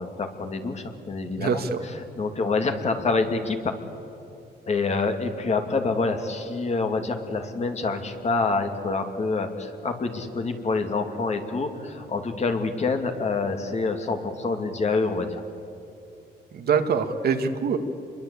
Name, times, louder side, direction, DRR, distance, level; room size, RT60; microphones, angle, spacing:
voice 1, 0.0-3.7 4.7-15.4, left 3 dB, 40° left, 5 dB, 2.8 m, -27 dB
voice 2, 1.4-1.8 16.5-17.8, right 6 dB, 60° right, 7 dB, 2.0 m, -24 dB
28.5 x 22.5 x 8.6 m, 2.7 s
cardioid pair, 125°, 18 cm